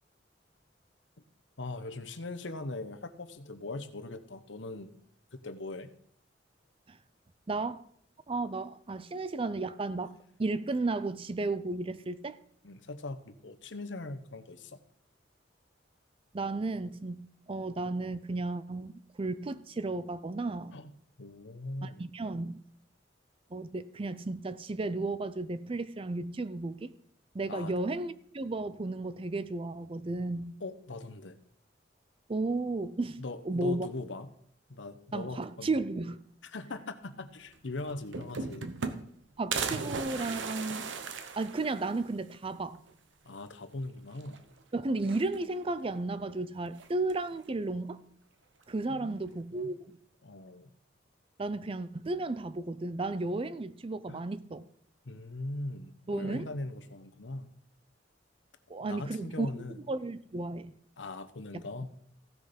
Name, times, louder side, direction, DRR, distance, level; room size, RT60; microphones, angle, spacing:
voice 1, 1.6-4.9 5.3-5.9 12.6-14.8 20.7-20.9 21.2-22.1 27.5-27.7 30.6-31.4 33.2-34.3 34.7-35.8 36.4-38.8 43.2-44.4 48.9-49.2 49.5-49.7 50.2-50.7 54.1-54.2 55.1-57.5 58.8-59.8 61.0-61.9, left 2 dB, 80° left, 1.0 m, -40 dB
voice 2, 7.5-7.8 8.3-12.4 16.3-17.2 17.5-20.8 21.8-22.6 23.5-26.9 27.3-30.6 32.3-33.9 35.1-36.2 39.4-40.9 41.4-42.8 44.7-48.0 48.7-50.0 51.4-54.6 56.1-56.5 58.7-59.5 59.9-60.7 61.5-61.7, right 2 dB, 30° right, 0.4 m, -34 dB
sound 1, 37.5-37.6 37.9-39.2 39.5-42.1 42.5-42.6 42.9-43.0 44.1-44.6 45.0-45.7 46.8-47.3, right 5 dB, 80° right, 0.9 m, -37 dB
15.0 x 6.3 x 5.2 m
head